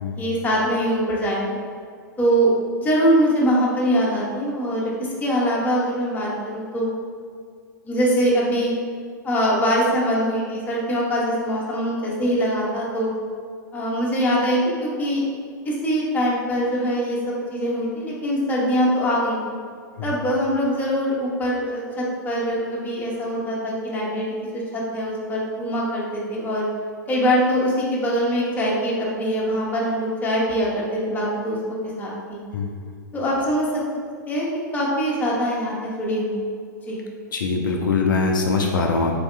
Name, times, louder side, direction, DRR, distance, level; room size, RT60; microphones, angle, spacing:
voice 1, 0.2-1.6 2.2-6.9 7.8-8.7 9.2-13.1 13.7-15.2 15.6-19.4 20.0-24.3 24.5-26.7 27.1-31.6 32.0-32.4 33.1-33.7 34.3-34.5 34.7-36.4 36.9-37.0, equal, 15° left, -5 dB, 1.1 m, -23 dB
voice 2, 37.3-39.1, left 4 dB, 80° left, 1 dB, 0.4 m, -22 dB
4.0 x 2.7 x 3.3 m, 2.1 s
hypercardioid pair, 105°, 11 cm